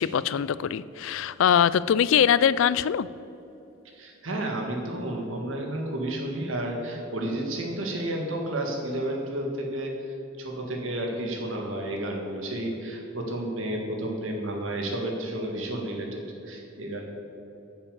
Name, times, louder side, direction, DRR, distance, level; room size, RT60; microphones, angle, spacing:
voice 1, 0.0-3.1, left 8 dB, 65° left, 18 dB, 0.3 m, -22 dB
voice 2, 4.0-10.0 10.4-17.0, right 1 dB, 65° right, 1 dB, 1.8 m, -31 dB
9.9 x 7.2 x 7.0 m, 2.8 s
head